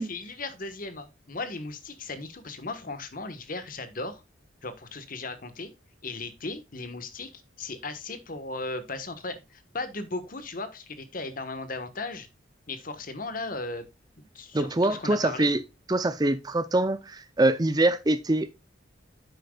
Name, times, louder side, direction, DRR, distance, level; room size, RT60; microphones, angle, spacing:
voice 1, 0.0-4.2 4.6-5.7 6.0-7.3 7.6-12.3 12.7-13.8 14.2-15.5, left 3 dB, 45° left, 1.4 m, -36 dB
voice 2, 14.5-15.6 15.9-18.6, right 2 dB, 20° right, 0.5 m, -24 dB
10.0 x 7.8 x 2.4 m
head